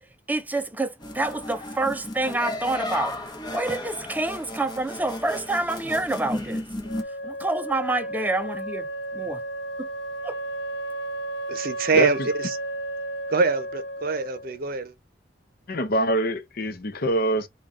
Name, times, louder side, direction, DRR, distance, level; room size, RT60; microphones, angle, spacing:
voice 1, 0.3-6.6 7.2-8.9 9.1-9.4 9.8-9.9 10.2-10.4, right 2 dB, 10° right, 0.5 m, -28 dB
sound 1, 1.0-7.0, left 1 dB, 25° left, 0.9 m, -34 dB
Wind instrument woodwind instrument, 6.8-14.6, right 1 dB, 90° left, 0.7 m, -33 dB
voice 2, 11.5-12.6 13.3-14.9, right 4 dB, 55° right, 0.7 m, -25 dB
voice 3, 15.7-17.5, equal, 55° left, 0.7 m, -24 dB
3.7 x 2.3 x 3.7 m
head